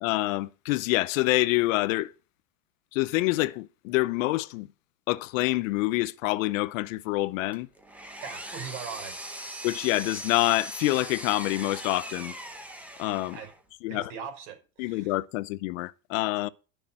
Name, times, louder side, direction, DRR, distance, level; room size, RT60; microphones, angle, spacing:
voice 1, 0.0-2.1 2.9-4.7 5.1-7.7 9.6-12.3 13.0-13.4 13.8-14.1 14.8-16.5, left 19 dB, 85° left, 0.9 m, -26 dB
Power tool, 7.5-13.6, right 1 dB, 5° right, 1.0 m, -40 dB
voice 2, 8.2-9.1 13.3-13.5 13.9-15.1, right 7 dB, 65° right, 5.8 m, -40 dB
11.5 x 6.5 x 7.6 m
cardioid pair, 175°, 38 cm